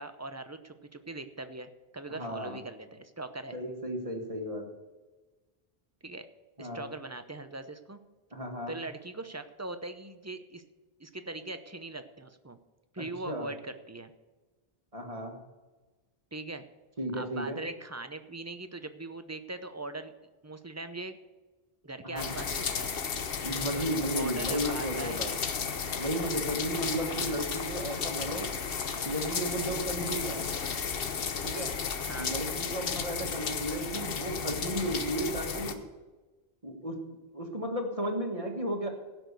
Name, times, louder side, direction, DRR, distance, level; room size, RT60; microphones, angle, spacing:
voice 1, 0.0-3.6 6.0-6.3 6.6-8.0 8.7-10.6 11.0-12.6 12.9-14.1 16.3-16.6 17.1-20.1 20.4-21.2 21.8-22.9 23.7-23.9 24.2-25.2 27.1-27.4 32.1-32.3, right 2 dB, 20° right, 9 dB, 0.6 m, -41 dB
voice 2, 2.1-2.6 3.5-4.6 6.6-6.9 8.3-8.8 13.0-13.5 14.9-15.4 17.0-17.6 22.0-22.4 23.4-25.3 26.0-28.5 29.0-30.4 31.4-31.7 32.2-35.8 36.6-37.0 37.3-38.9, right 1 dB, 35° right, 3 dB, 1.8 m, -34 dB
sound 1, 22.2-35.7, left 6 dB, 65° left, 1.1 m, -34 dB
16.5 x 6.2 x 6.8 m, 1.2 s
omnidirectional pair, 1.1 m